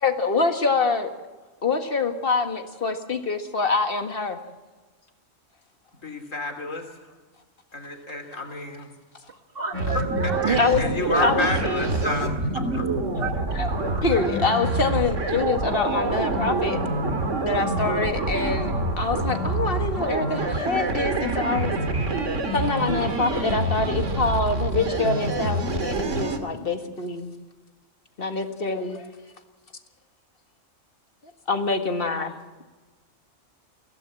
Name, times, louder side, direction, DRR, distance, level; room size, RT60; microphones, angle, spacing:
voice 1, 0.0-1.1 1.6-4.4 10.6-10.8 11.2-11.5 13.5-13.7 14.0-16.8 17.4-21.7 22.5-27.3 28.2-29.1 31.5-32.3, left 4 dB, 45° left, 6 dB, 1.9 m, -25 dB
voice 2, 6.0-6.8 7.7-8.9 10.5-12.3 12.8-12.9, left 2 dB, 80° left, 4 dB, 3.5 m, -29 dB
voice 3, 9.3-10.9 11.2-11.3 12.0-12.1 12.5-12.8 13.2-14.3, right 5 dB, 45° right, 7 dB, 1.6 m, -31 dB
sound 1, 9.7-26.4, right 2 dB, 70° right, 2.4 m, -26 dB
23.5 x 16.5 x 7.6 m, 1.3 s
omnidirectional pair, 1.3 m